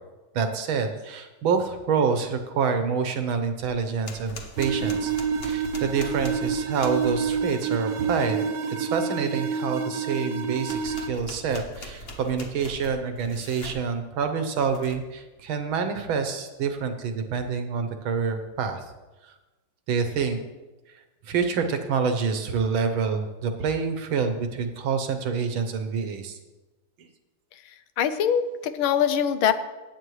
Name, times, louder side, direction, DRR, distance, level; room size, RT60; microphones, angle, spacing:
voice 1, 0.3-5.1 5.4-8.5 8.8-18.9 19.2-19.3 19.9-20.4 20.9-26.4 27.0-27.1, right 5 dB, 80° right, 7 dB, 1.8 m, -27 dB
sound 1, 3.6-7.5 10.6-13.8 14.6-15.1, left 1 dB, 40° left, 1.0 m, -41 dB
sound 2, 4.6-11.1, right 6 dB, 55° right, 1.0 m, -28 dB
voice 2, 28.0-29.5, left 8 dB, 80° left, 11 dB, 1.5 m, -23 dB
16.0 x 8.5 x 3.2 m, 1.1 s
omnidirectional pair, 2.2 m